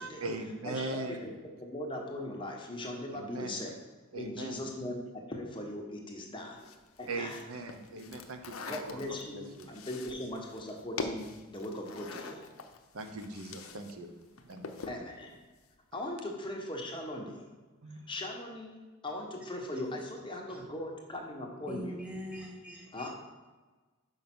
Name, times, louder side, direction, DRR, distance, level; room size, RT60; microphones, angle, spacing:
voice 1, 0.0-1.3 3.1-3.6 4.1-4.6 7.1-9.7 10.1-10.2 12.9-14.1 14.4-14.9 17.8-18.0, right 2 dB, 90° right, 6 dB, 0.8 m, -40 dB
voice 2, 0.6-1.3 1.6-3.7 4.2-6.6 7.0-7.4 8.7-12.4 14.9-15.4 15.9-17.5 17.9-22.0 22.9-23.1, left 1 dB, 25° left, 0 dB, 1.0 m, -39 dB
sound 1, 6.6-13.9 14.2-15.1, left 4 dB, 75° left, 0.7 m, -43 dB
voice 3, 21.7-23.1, equal, 5° right, -3 dB, 1.5 m, -43 dB
5.4 x 5.4 x 6.0 m, 1.3 s
head